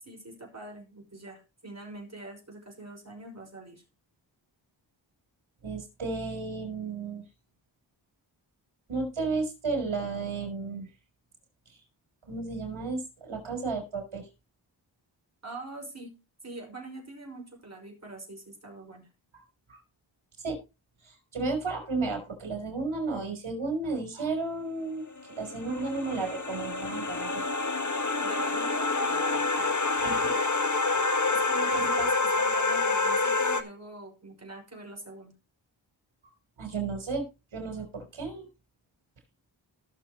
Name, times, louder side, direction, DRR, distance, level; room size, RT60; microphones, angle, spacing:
voice 1, 0.0-3.8 15.4-19.1 28.2-29.7 31.3-35.4, right 2 dB, 35° right, 2 dB, 5.7 m, -44 dB
voice 2, 5.6-7.2 8.9-10.9 12.3-14.2 19.7-19.8 20.4-20.6 21.0-27.6 30.0-30.3 30.9-31.1 31.7-32.1 36.6-37.2 37.5-38.5, right 3 dB, 80° right, 4 dB, 4.1 m, -33 dB
sound 1, 25.2-33.6, left 3 dB, 40° left, 1.5 m, -27 dB
18.5 x 6.9 x 3.0 m, 0.28 s
cardioid pair, 40°, 47 cm